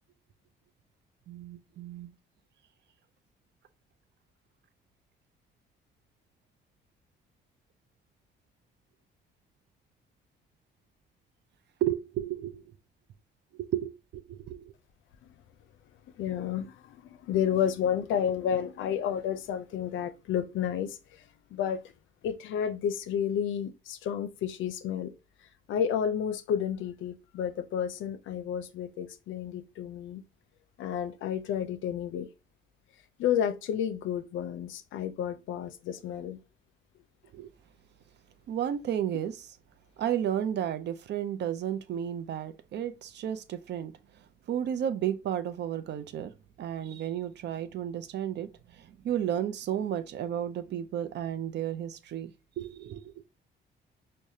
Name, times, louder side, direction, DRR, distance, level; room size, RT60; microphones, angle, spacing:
voice 1, 1.3-2.1 11.8-12.6 13.5-14.7 37.3-37.5 38.5-39.5 40.0-43.9 44.5-46.3 46.6-53.1, right 10 dB, 60° right, 0.5 m, -33 dB
voice 2, 16.2-21.2 21.5-21.8 22.2-25.1 25.7-30.2 30.8-32.3 33.2-36.4, left 9 dB, 75° left, 0.5 m, -31 dB
4.7 x 2.2 x 2.7 m
cardioid pair, 90°, 20 cm